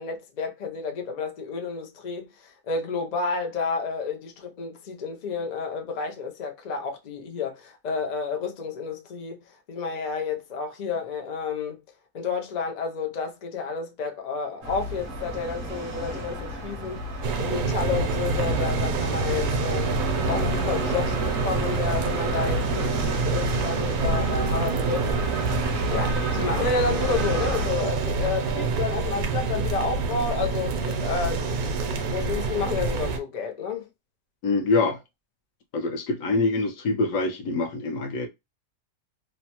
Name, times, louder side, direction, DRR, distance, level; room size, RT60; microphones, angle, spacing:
voice 1, 0.0-9.4 9.7-11.8 12.1-17.0 17.4-19.9 20.3-25.1 25.9-33.9, left 5 dB, 90° left, 0.3 m, -30 dB
sound 1, 14.6-27.7, right 1 dB, 50° right, 0.6 m, -32 dB
sound 2, 17.2-33.2, right 4 dB, 75° right, 1.0 m, -27 dB
voice 2, 34.4-35.0 35.7-38.3, left 3 dB, 65° left, 1.0 m, -25 dB
3.0 x 2.1 x 2.8 m
omnidirectional pair, 1.6 m